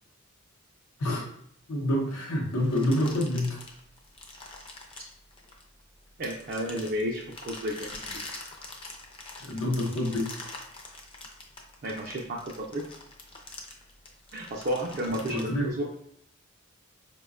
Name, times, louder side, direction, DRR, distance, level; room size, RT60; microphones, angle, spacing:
voice 1, 1.7-3.6 9.4-10.3 15.3-15.7, left 1 dB, 90° left, -1 dB, 0.7 m, -27 dB
sound 1, 2.6-5.8 6.2-15.4, left 2 dB, 25° left, 0.4 m, -44 dB
voice 2, 6.2-8.1 11.8-12.8 14.3-15.9, equal, 45° right, -1 dB, 0.4 m, -32 dB
4.6 x 2.1 x 2.3 m, 0.68 s
head